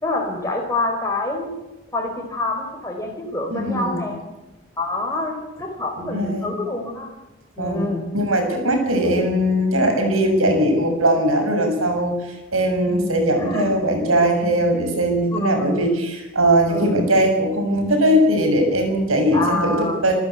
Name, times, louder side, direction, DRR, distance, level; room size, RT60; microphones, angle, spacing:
voice 1, 0.0-1.5 1.9-4.2 4.8-7.1 7.6-8.1 9.0-9.4 12.9-13.7 15.3-16.0 16.7-17.0 19.3-20.0, left 2 dB, 15° left, 0 dB, 4.6 m, -26 dB
voice 2, 3.5-4.0 6.0-6.5 7.6-12.1 12.5-20.1, right 1 dB, 90° right, 4 dB, 6.9 m, -20 dB
28.0 x 14.0 x 8.5 m, 0.97 s
head